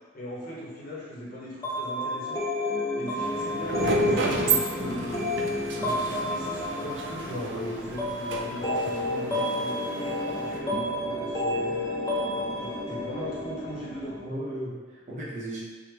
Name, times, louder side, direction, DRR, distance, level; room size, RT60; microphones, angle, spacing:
voice 1, 0.1-2.5 2.9-5.3 5.8-11.9 12.6-14.2, equal, 50° left, -6 dB, 0.8 m, -38 dB
sound 1, 1.6-14.2, left 1 dB, 20° left, 0.5 m, -30 dB
sound 2, 3.2-10.6, right 4 dB, 75° right, 0.4 m, -32 dB
voice 2, 7.5-7.9 14.2-15.6, right 1 dB, 40° right, -7 dB, 0.7 m, -35 dB
3.1 x 2.1 x 3.2 m, 1.4 s
head